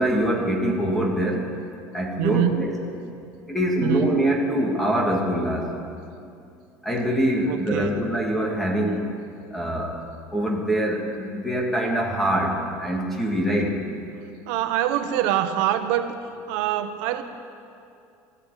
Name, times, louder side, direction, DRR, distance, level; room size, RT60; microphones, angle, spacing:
voice 1, 0.0-1.5 1.9-2.8 3.5-5.7 6.8-9.0 9.5-10.0 10.3-13.8, right 1 dB, 5° left, -1 dB, 2.1 m, -24 dB
voice 2, 2.2-2.7 3.8-4.1 7.5-8.0 14.5-16.2 16.5-17.2, right 12 dB, 80° right, 8 dB, 1.1 m, -24 dB
20.5 x 14.0 x 4.9 m, 2.5 s
cardioid pair, 165°, 7 cm